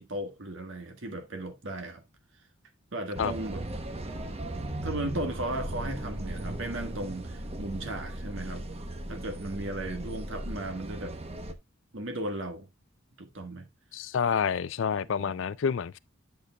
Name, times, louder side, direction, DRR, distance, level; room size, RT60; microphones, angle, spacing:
voice 1, 0.0-2.0 2.9-3.6 4.8-8.7 9.1-11.2 11.9-12.7 13.2-13.7 15.2-15.4, right 1 dB, 60° right, 1.5 m, -36 dB
sound 1, 3.2-11.5, right 1 dB, 30° right, 0.8 m, -37 dB
voice 2, 13.9-16.0, left 6 dB, 60° left, 0.4 m, -28 dB
11.0 x 6.6 x 2.3 m
head